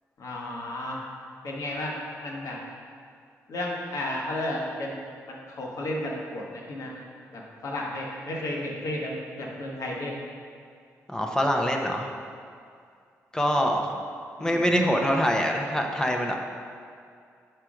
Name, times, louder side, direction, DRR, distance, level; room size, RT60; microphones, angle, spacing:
voice 1, 0.2-1.0 1.4-1.9 2.2-2.6 3.5-5.0 5.3-6.9 7.3-10.1 14.4-14.6, left 1 dB, 65° left, -2 dB, 1.2 m, -33 dB
voice 2, 11.1-12.1 13.3-13.9 14.4-16.3, equal, 10° left, 1 dB, 0.7 m, -24 dB
4.9 x 4.5 x 4.8 m, 2.3 s
supercardioid pair, 55°, 6 cm